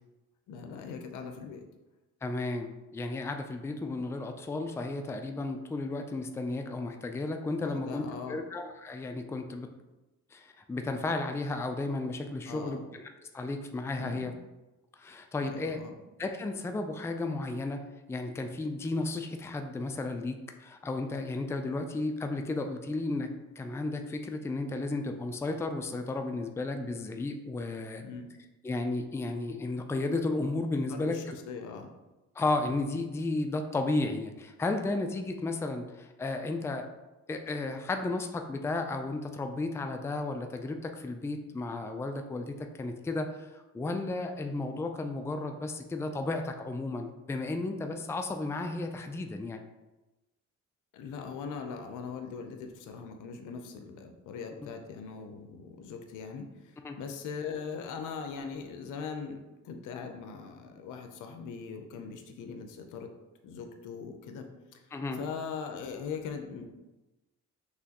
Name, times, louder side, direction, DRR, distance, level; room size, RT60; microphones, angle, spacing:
voice 1, 0.5-1.7 7.6-8.4 12.5-12.8 14.0-14.3 15.4-16.0 28.0-28.3 30.9-31.9 50.9-63.1 63.4-64.8 65.1-66.7, left 5 dB, 85° left, 5 dB, 0.7 m, -40 dB
voice 2, 2.2-9.7 10.3-13.1 13.3-14.3 15.0-15.8 16.2-17.8 18.1-23.3 23.6-28.0 28.6-31.4 32.4-36.9 37.3-49.6 56.8-57.0 64.9-65.2, left 2 dB, 10° left, 6 dB, 0.4 m, -33 dB
6.0 x 3.0 x 2.9 m, 1.1 s
cardioid pair, 90°, 30 cm